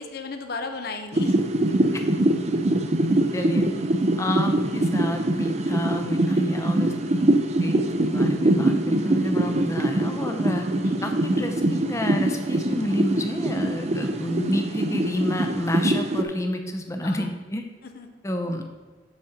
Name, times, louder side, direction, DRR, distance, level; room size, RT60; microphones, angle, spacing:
voice 1, 0.0-1.4 1.7-1.9 10.8-11.1 17.0-17.3 17.9-18.2, left 3 dB, 55° left, 6 dB, 0.7 m, -35 dB
sound 1, 1.1-16.2, right 1 dB, 35° right, 0.6 m, -23 dB
voice 2, 3.3-3.7 4.1-7.2 7.6-10.7 11.0-17.6 18.2-18.6, left 1 dB, 15° left, 5 dB, 0.7 m, -29 dB
7.2 x 4.3 x 6.5 m, 1.3 s
head